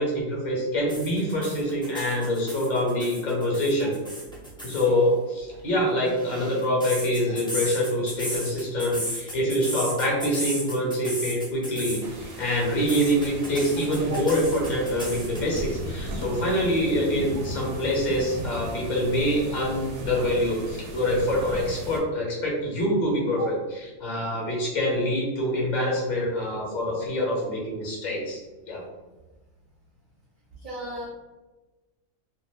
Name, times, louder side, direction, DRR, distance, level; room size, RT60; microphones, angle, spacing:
voice 1, 0.0-4.0 4.6-28.4 28.7-28.8, equal, 40° left, -2 dB, 0.9 m, -25 dB
sound 1, 0.9-4.9 5.9-12.1 12.4-15.6, equal, 5° left, 0.5 m, -35 dB
sound 2, 12.0-22.0, equal, 70° right, 0.9 m, -36 dB
voice 2, 30.6-31.1, right 1 dB, 45° right, -7 dB, 0.7 m, -34 dB
2.4 x 2.4 x 3.4 m, 1.2 s
omnidirectional pair, 1.4 m